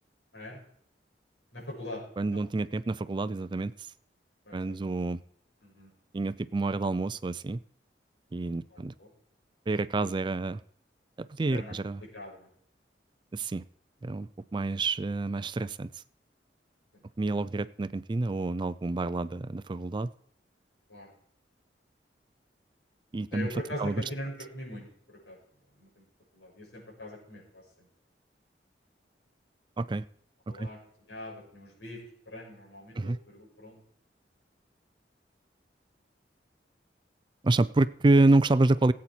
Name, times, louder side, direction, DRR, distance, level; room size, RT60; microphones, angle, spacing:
voice 1, 1.5-2.0 2.3-2.4 4.4-4.7 5.6-5.9 8.7-9.1 11.5-11.7 12.1-12.5 20.9-21.1 23.3-25.4 25.8-26.0 26.3-27.6 30.5-30.8 31.1-32.0 32.3-33.8, left 1 dB, 85° left, -3 dB, 6.1 m, -41 dB
voice 2, 2.2-3.9 4.5-5.2 6.1-7.6 8.3-8.9 9.7-10.6 11.2-12.0 13.3-13.6 14.0-16.0 17.2-20.1 23.1-23.5 23.8-24.0 29.8-30.1 30.5-30.7 32.9-33.2 37.4-38.9, right 2 dB, 25° right, 15 dB, 0.4 m, -28 dB
17.5 x 8.4 x 4.5 m, 0.66 s
head